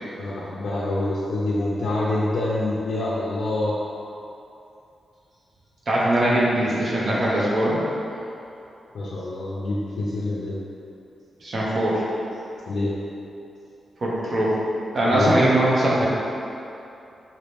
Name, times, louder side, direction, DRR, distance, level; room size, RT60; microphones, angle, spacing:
voice 1, 0.2-3.8 8.9-10.6 12.7-12.9 15.1-15.3, left 2 dB, 75° left, -8 dB, 0.6 m, -26 dB
voice 2, 5.9-7.8 11.4-12.0 14.0-14.6 14.9-16.1, right 1 dB, 35° right, -6 dB, 0.8 m, -21 dB
4.8 x 2.7 x 3.4 m, 2.7 s
wide cardioid pair, 175°, 0 cm